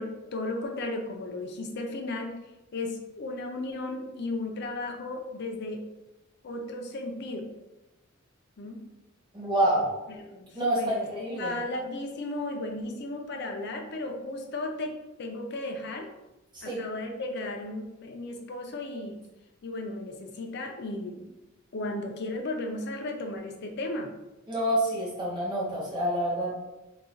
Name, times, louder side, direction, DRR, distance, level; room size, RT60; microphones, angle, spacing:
voice 1, 0.0-2.3 2.7-5.8 6.4-7.5 8.6-8.8 10.1-11.1 11.4-16.1 16.6-19.2 19.6-21.3 21.7-24.1, left 2 dB, 55° left, 3 dB, 0.5 m, -35 dB
voice 2, 9.3-9.9 10.5-11.5 16.5-16.8 24.5-26.5, right 1 dB, 25° right, -6 dB, 1.0 m, -27 dB
3.9 x 2.3 x 2.5 m, 1.0 s
head